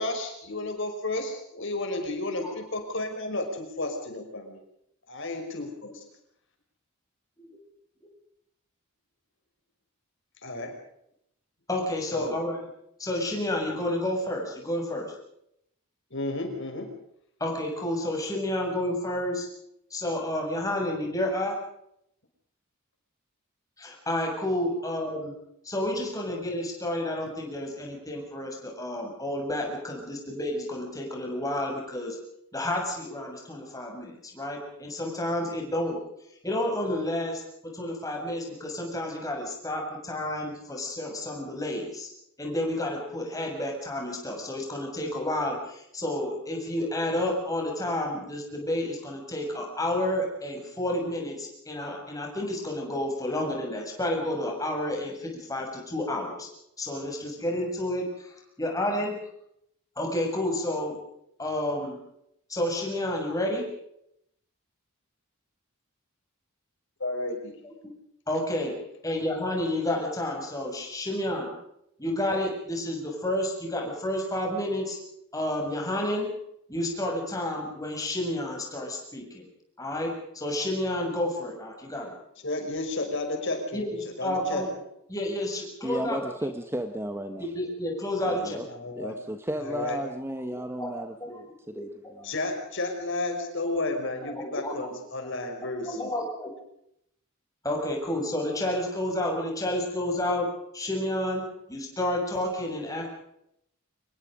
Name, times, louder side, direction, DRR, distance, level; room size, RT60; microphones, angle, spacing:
voice 1, 0.0-4.6 5.1-6.0 10.4-10.7 12.1-12.4 16.1-16.9 67.0-67.5 82.4-83.8 84.2-84.6 88.7-89.2 89.6-90.0 92.2-96.1, left 2 dB, 60° left, 4 dB, 5.7 m, -32 dB
voice 2, 11.7-12.7 13.0-15.1 17.4-19.5 19.9-21.5 23.8-25.3 25.6-32.2 32.5-36.0 36.4-37.4 37.7-42.1 42.4-56.5 56.8-59.1 60.0-61.0 61.4-62.0 62.5-63.7 68.3-68.7 69.0-71.5 72.0-75.0 75.3-76.3 76.7-79.4 79.8-82.1 83.7-84.7 85.1-86.2 87.4-88.6 90.4-90.9 91.2-91.4 91.7-91.8 92.2-92.3 94.2-94.8 95.9-96.5 97.6-100.5 100.7-101.4 101.7-103.1, left 1 dB, 15° left, 0 dB, 7.1 m, -30 dB
voice 3, 85.8-87.5 88.2-88.7 89.0-92.3, right 1 dB, 10° right, 8 dB, 1.4 m, -34 dB
26.5 x 21.5 x 5.1 m, 0.76 s
head